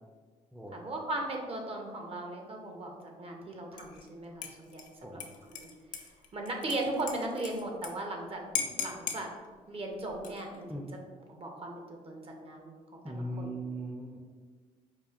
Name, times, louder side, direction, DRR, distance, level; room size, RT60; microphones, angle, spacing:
voice 1, 0.7-4.8 5.1-5.2 5.5-5.7 6.3-8.4 8.8-9.3 9.7-10.8 11.3-12.8 13.0-13.5, right 2 dB, 40° right, 2 dB, 0.7 m, -37 dB
Dishes pots and pans / Liquid, 3.8-4.1 4.4-7.9 8.2-8.3 8.6-9.2 10.1-10.6, left 6 dB, 65° left, 0.5 m, -38 dB
voice 2, 13.0-14.2, right 1 dB, 5° right, -1 dB, 0.4 m, -38 dB
4.7 x 2.4 x 2.4 m, 1.5 s
supercardioid pair, 70°, 15 cm